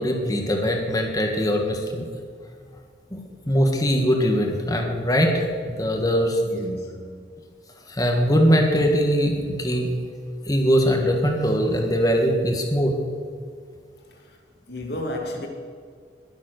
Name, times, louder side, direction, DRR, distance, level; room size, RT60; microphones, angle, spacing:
voice 1, 0.0-2.1 3.1-3.2 3.5-6.4 7.9-9.9 10.5-13.0, equal, 20° left, 1.6 m, -21 dB
voice 2, 6.4-7.3 14.1-14.4 14.7-15.5, left 1 dB, 60° left, 2.4 m, -33 dB
20.5 x 7.4 x 6.6 m
head